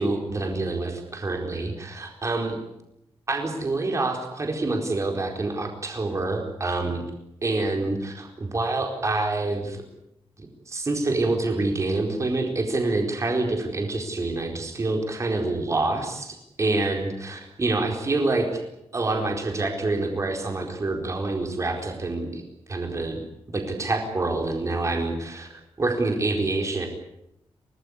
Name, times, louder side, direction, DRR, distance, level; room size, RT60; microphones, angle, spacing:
voice 1, 0.0-2.6 3.3-7.0 7.4-9.8 10.4-18.6 18.9-22.4 22.7-23.2 23.5-26.9, right 2 dB, 30° right, 2 dB, 4.4 m, -27 dB
24.5 x 19.0 x 9.7 m, 0.82 s
wide cardioid pair, 140°, 10 cm